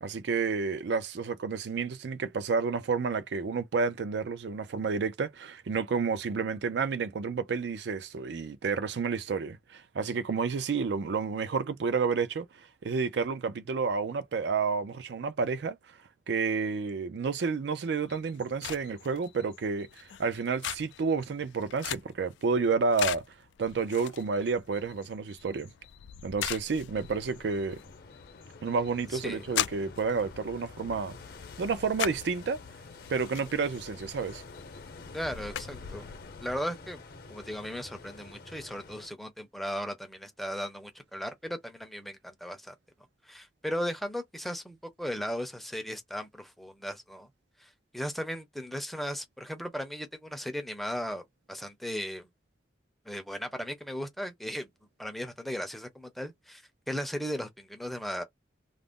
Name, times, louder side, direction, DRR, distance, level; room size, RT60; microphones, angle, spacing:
voice 1, 0.0-15.8 16.3-23.2 23.6-25.7 26.2-27.8 28.6-31.2 31.6-32.6 33.1-34.4, right 5 dB, 70° right, 0.4 m, -30 dB
sound 1, 17.9-36.6, left 11 dB, 90° left, 0.3 m, -41 dB
calm seawaves, 26.9-39.1, left 3 dB, 55° left, 0.8 m, -49 dB
voice 2, 29.1-29.4 35.1-36.0 36.4-37.0 37.3-42.7 43.3-47.3 47.6-52.3 53.1-54.7 55.0-58.2, equal, ahead, 0.5 m, -36 dB
2.4 x 2.0 x 3.5 m
head